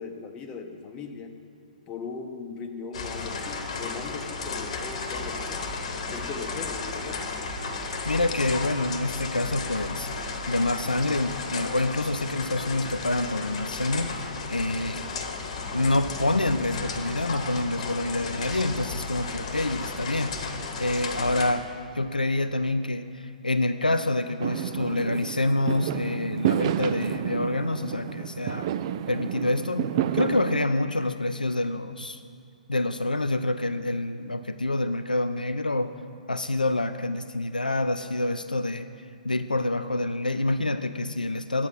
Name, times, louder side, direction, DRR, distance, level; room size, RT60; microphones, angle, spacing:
voice 1, 0.0-1.3 1.9-5.7 6.1-7.3, left 4 dB, 20° left, 4 dB, 0.9 m, -38 dB
sound 1, 2.9-21.5, left 4 dB, 45° left, 1.1 m, -34 dB
voice 2, 8.1-10.1 10.5-15.1 15.7-20.5 20.8-21.7 21.9-28.7 29.1-29.9 30.1-32.2 32.7-35.9 36.3-38.9 39.2-41.7, left 2 dB, 85° left, 9 dB, 0.4 m, -27 dB
Fireworks, 24.4-30.7, right 11 dB, 40° right, 0.4 m, -30 dB
9.8 x 8.3 x 6.2 m, 2.4 s
figure-of-eight pair, 120°, 4 cm